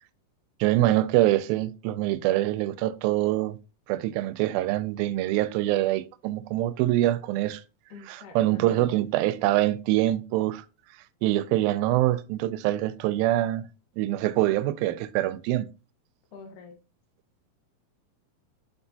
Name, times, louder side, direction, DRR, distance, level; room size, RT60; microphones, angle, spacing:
voice 1, 0.6-3.6 3.9-7.6 8.1-10.7 11.2-13.6 14.0-15.7, right 15 dB, 85° right, 2.3 m, -24 dB
voice 2, 7.9-8.9 16.3-16.8, left 5 dB, 70° left, 2.4 m, -46 dB
6.9 x 5.7 x 2.7 m
omnidirectional pair, 4.1 m